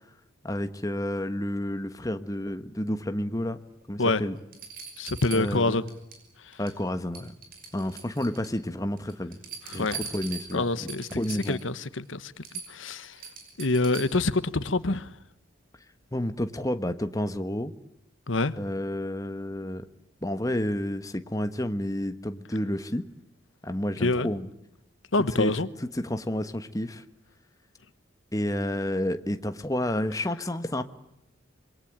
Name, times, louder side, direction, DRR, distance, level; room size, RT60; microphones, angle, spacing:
voice 1, 0.4-3.6 3.9-4.4 5.3-5.8 6.6-7.3 7.7-9.4 9.7-11.6 16.1-17.7 18.6-19.9 20.2-23.0 23.6-24.5 25.4-27.0 28.3-30.8, left 1 dB, 20° left, 1.3 m, -30 dB
sound 1, 3.8-3.9 4.5-6.2 6.5-6.9 7.1-8.6 9.0-11.7 12.1-12.2 12.4-14.3 16.0-16.1, right 6 dB, 50° right, 5.8 m, -42 dB
voice 2, 5.0-5.8 9.7-10.0 10.5-11.2 11.5-12.4 12.7-13.1 13.6-15.1 18.3-18.5 24.0-24.3 25.1-25.7, left 2 dB, 85° left, 1.3 m, -26 dB
26.5 x 23.0 x 8.8 m
head